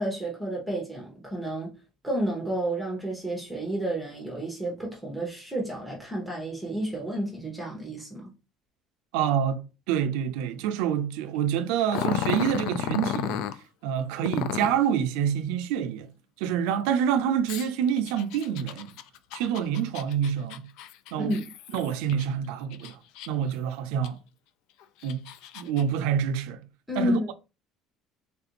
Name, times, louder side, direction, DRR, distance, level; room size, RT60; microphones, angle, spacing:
voice 1, 0.0-1.7 2.0-8.3 21.2-21.5 26.9-27.3, right 1 dB, ahead, 0.9 m, -31 dB
voice 2, 9.1-13.4 13.8-16.1 16.4-18.9 19.3-20.7 21.1-21.4 21.7-23.0 23.3-24.2 25.0-25.3 25.5-26.6 27.0-27.3, right 9 dB, 85° right, 0.4 m, -27 dB
Growling, 11.9-13.6 14.3-14.9 17.5-22.3 22.7-23.5 24.0-24.1 24.8-25.8, left 10 dB, 75° left, 0.3 m, -33 dB
3.3 x 2.5 x 2.9 m
cardioid pair, 135°, 0 cm